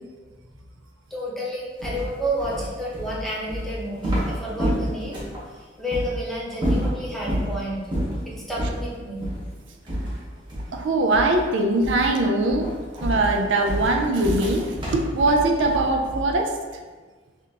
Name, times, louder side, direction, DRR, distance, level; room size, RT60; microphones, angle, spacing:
voice 1, 1.1-5.2 5.8-7.9 8.3-9.2, equal, ahead, -6 dB, 0.9 m, -30 dB
sound 1, 1.8-5.4 5.9-6.1 6.5-7.5 7.9-8.2 8.5-8.8 9.2-9.4 9.9-10.8 11.1-11.5 11.8-12.1 12.5-16.4, equal, 25° right, 1.0 m, -28 dB
voice 2, 10.7-12.7 13.0-16.5, right 2 dB, 90° right, 4 dB, 0.4 m, -21 dB
5.4 x 2.5 x 2.8 m, 1.4 s
head